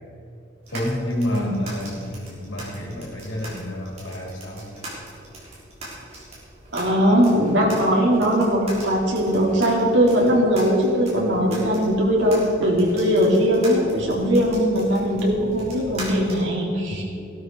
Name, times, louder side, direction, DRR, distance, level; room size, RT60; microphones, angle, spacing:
sound 1, 0.6-16.4, right 1 dB, 35° right, 4.0 m, -41 dB
voice 1, 0.7-4.6 16.9-17.0, left 1 dB, 80° left, -3 dB, 4.1 m, -29 dB
voice 2, 6.7-17.0, equal, 70° right, -3 dB, 3.5 m, -20 dB
16.0 x 12.5 x 4.8 m, 2.9 s
head